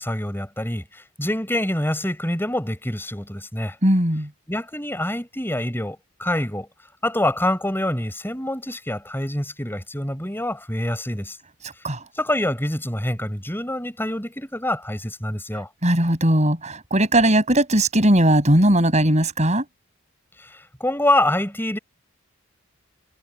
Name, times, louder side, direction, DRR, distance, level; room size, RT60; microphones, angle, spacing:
voice 1, 0.0-3.8 4.5-6.7 7.0-11.4 12.1-15.7 20.4-21.8, left 1 dB, 10° left, 6.9 m, -26 dB
voice 2, 3.8-4.3 11.8-12.0 15.8-19.6, right 1 dB, 30° right, 8.0 m, -18 dB
head